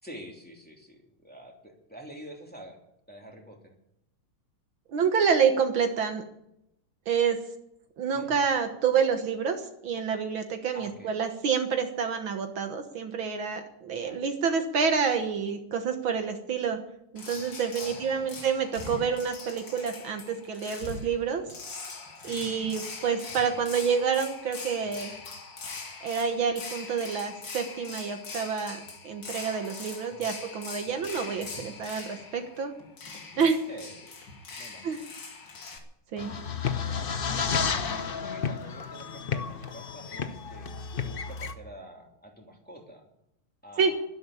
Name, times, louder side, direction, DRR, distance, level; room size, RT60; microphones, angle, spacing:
voice 1, 0.0-2.8 3.1-3.8 8.1-8.5 10.7-11.1 14.0-14.2 17.8-18.4 22.3-22.7 30.1-30.3 33.7-34.3 34.6-35.0 37.2-40.7 41.0-43.1 43.6-44.0, right 1 dB, 5° left, 0 dB, 2.9 m, -46 dB
voice 2, 4.9-6.2 7.1-7.4 8.0-16.8 17.1-21.4 22.2-25.1 26.0-32.7 33.4-33.6 34.8-35.0 36.1-36.4 43.8-43.9, right 6 dB, 65° right, 6 dB, 2.0 m, -28 dB
sound 1, 17.2-35.8, left 4 dB, 55° left, 2.8 m, -42 dB
sound 2, 36.2-41.5, left 6 dB, 75° left, 0.5 m, -31 dB
12.5 x 11.5 x 8.4 m, 0.80 s
omnidirectional pair, 2.4 m